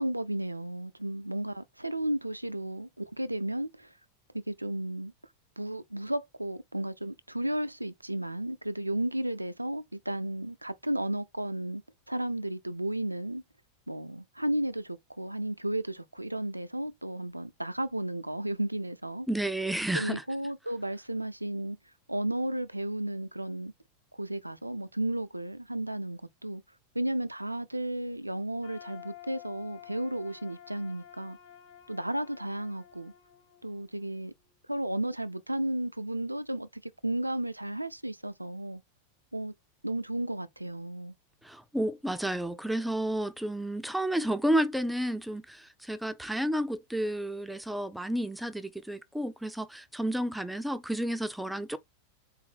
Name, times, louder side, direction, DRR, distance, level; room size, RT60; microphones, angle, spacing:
voice 1, 0.0-3.9 4.3-5.1 5.6-11.8 12.1-13.4 13.9-19.3 19.9-21.8 22.1-23.7 24.1-26.6 26.9-31.4 31.9-33.1 33.6-34.3 34.7-38.8 39.3-39.5 39.8-41.1, right 1 dB, 85° right, 0.4 m, -33 dB
voice 2, 19.3-20.2 41.4-51.8, right 1 dB, ahead, 0.4 m, -31 dB
sound 1, 28.6-34.5, left 11 dB, 50° left, 1.2 m, -51 dB
4.0 x 2.1 x 4.0 m
figure-of-eight pair, 90°, 0 cm